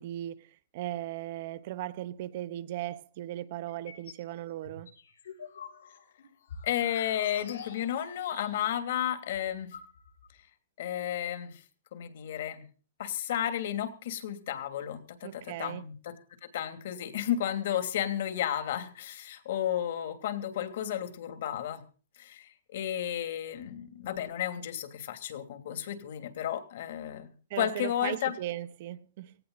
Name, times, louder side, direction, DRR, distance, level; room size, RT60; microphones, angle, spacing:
voice 1, 0.0-4.9 15.2-15.9 27.5-29.4, right 14 dB, 45° right, 1.0 m, -38 dB
sound 1, 3.7-4.3 4.6-8.8 9.1-9.2 9.3-10.3, left 6 dB, 85° left, 7.0 m, -47 dB
voice 2, 6.6-9.7 10.8-11.6 11.9-12.7 13.0-16.1 16.4-21.8 22.2-28.3, left 10 dB, 60° left, 3.0 m, -33 dB
18.0 x 16.5 x 4.1 m
hypercardioid pair, 160°, 0 cm